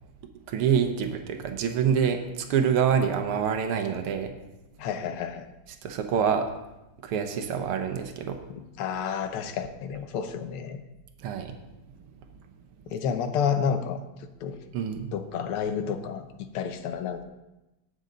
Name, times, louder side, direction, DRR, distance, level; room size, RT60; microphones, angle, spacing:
voice 1, 0.5-4.3 5.8-6.5 7.0-8.4 11.2-11.5 14.7-15.1, right 7 dB, 90° right, 6 dB, 1.8 m, -26 dB
voice 2, 4.8-5.5 8.5-10.8 12.9-14.0 14.4-14.6 15.1-17.2, left 7 dB, 85° left, 9 dB, 1.8 m, -30 dB
18.5 x 6.5 x 3.9 m, 0.98 s
omnidirectional pair, 2.4 m